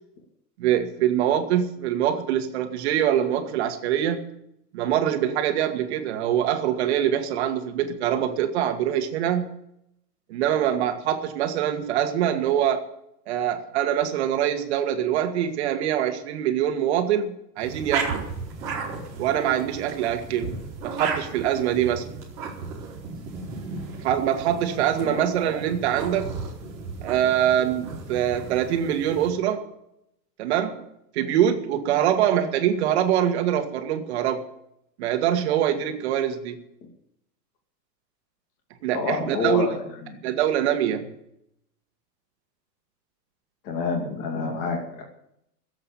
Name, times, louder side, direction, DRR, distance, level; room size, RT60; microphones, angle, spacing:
voice 1, 0.6-4.3 4.7-9.5 10.3-12.9 13.3-18.3 19.2-20.6 20.8-22.0 24.0-26.3 27.0-29.7 30.4-30.8 31.1-34.4 35.0-36.6 38.8-39.7 40.2-41.1, right 10 dB, 40° right, 1.6 m, -24 dB
sound 1, 17.6-29.3, right 4 dB, 5° right, 0.5 m, -35 dB
voice 2, 38.9-40.2 43.6-45.0, left 4 dB, 25° left, 2.4 m, -28 dB
16.0 x 7.9 x 8.7 m
supercardioid pair, 170°, 50 cm